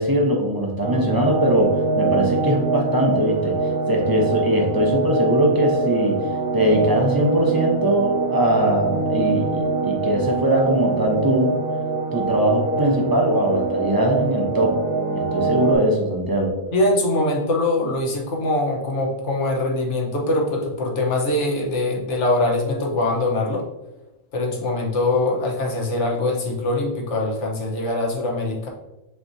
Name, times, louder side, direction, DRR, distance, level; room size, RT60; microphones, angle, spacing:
voice 1, 0.0-11.6 12.1-14.8 15.2-16.5, equal, 20° right, -1 dB, 0.6 m, -21 dB
sound 1, 0.8-15.8, right 4 dB, 80° right, 1.8 m, -24 dB
voice 2, 16.7-23.6 24.3-28.7, left 2 dB, 60° left, 0 dB, 1.2 m, -23 dB
6.6 x 3.0 x 2.6 m, 0.98 s
omnidirectional pair, 1.4 m